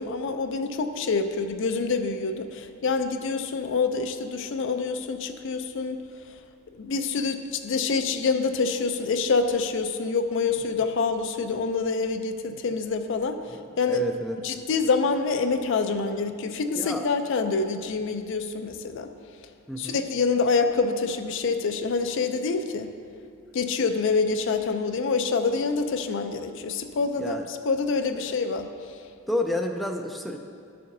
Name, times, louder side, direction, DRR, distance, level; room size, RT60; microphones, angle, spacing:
voice 1, 0.0-6.0 6.8-13.4 13.8-14.0 14.4-19.1 19.8-22.9 23.5-28.7, left 4 dB, 60° left, 8 dB, 0.4 m, -26 dB
voice 2, 13.9-14.4 16.7-17.1 19.7-20.0 27.2-27.5 28.1-28.3 29.3-30.4, left 1 dB, ahead, 2 dB, 0.3 m, -30 dB
11.5 x 6.7 x 2.6 m, 2.4 s
head